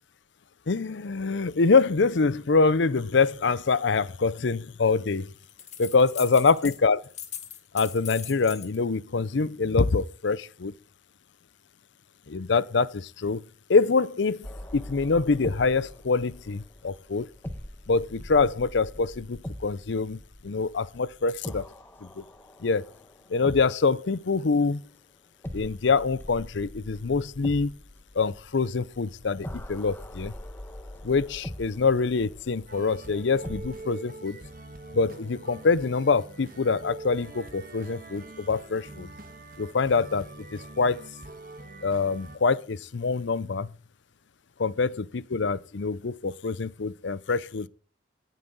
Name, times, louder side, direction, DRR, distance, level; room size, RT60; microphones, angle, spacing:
voice 1, 0.7-5.3 5.8-7.0 7.7-10.7 12.3-13.4 13.7-14.5 14.7-17.3 17.9-21.6 22.0-22.2 22.6-22.9 23.3-24.8 25.5-27.7 28.1-30.3 31.0-34.4 34.9-39.1 39.6-41.0 41.8-43.7 44.6-47.7, left 4 dB, 65° left, 0.6 m, -25 dB
sound 1, 5.4-6.8 7.0-8.8, left 10 dB, 35° left, 1.7 m, -40 dB
sound 2, 14.4-24.2 25.4-33.8, left 1 dB, 10° left, 1.1 m, -42 dB
sound 3, 32.7-42.4, right 2 dB, 45° right, 1.5 m, -44 dB
16.5 x 9.4 x 4.0 m
head